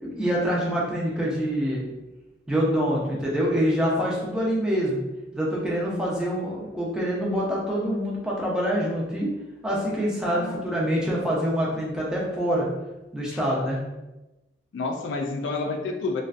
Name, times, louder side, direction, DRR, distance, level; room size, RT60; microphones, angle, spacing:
voice 1, 0.0-1.8 2.5-5.0 5.3-9.3 9.6-12.7 13.1-13.8, equal, 5° right, -5 dB, 0.5 m, -25 dB
voice 2, 10.2-10.8 13.3-13.4 14.7-16.2, left 3 dB, 85° left, 2 dB, 0.3 m, -30 dB
2.4 x 2.2 x 2.4 m, 1.0 s
head